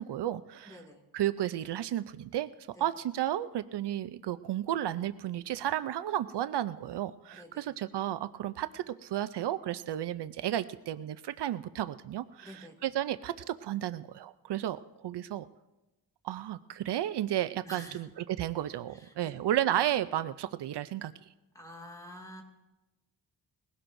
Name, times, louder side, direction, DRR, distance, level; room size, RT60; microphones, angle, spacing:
voice 1, 0.0-0.8 1.1-15.5 16.2-21.3, right 12 dB, 75° right, 13 dB, 0.5 m, -33 dB
voice 2, 0.7-1.0 2.7-2.9 7.3-7.7 12.4-12.8 17.6-18.0 18.9-19.3 21.5-22.4, equal, 10° left, 1 dB, 2.2 m, -48 dB
20.5 x 16.5 x 2.6 m, 1.0 s
wide cardioid pair, 120°, 41 cm